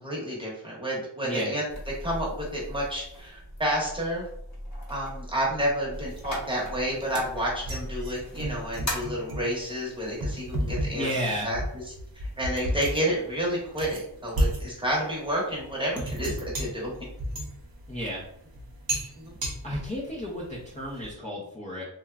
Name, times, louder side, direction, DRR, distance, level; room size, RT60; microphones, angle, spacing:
voice 1, 0.0-1.6 2.0-4.3 4.9-11.6 12.1-16.9 19.2-19.3, equal, 10° right, -5 dB, 0.9 m, -30 dB
sound 1, 1.7-8.9, left 1 dB, 35° left, 0.9 m, -39 dB
sound 2, 5.9-21.1, right 1 dB, 50° right, 0.6 m, -34 dB
voice 2, 10.9-11.5 17.9-18.2 19.6-21.8, equal, 15° left, -5 dB, 0.5 m, -32 dB
2.9 x 2.2 x 2.3 m, 0.72 s
wide cardioid pair, 110°, 46 cm